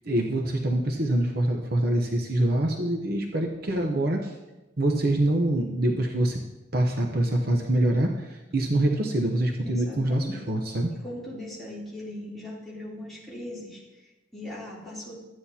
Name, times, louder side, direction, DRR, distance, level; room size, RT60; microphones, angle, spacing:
voice 1, 0.1-4.3 4.8-6.4 6.7-10.9, right 1 dB, 55° right, 2 dB, 0.8 m, -25 dB
voice 2, 9.6-10.4 11.0-15.1, left 1 dB, ahead, -8 dB, 3.1 m, -39 dB
13.0 x 9.1 x 2.8 m, 1.1 s
head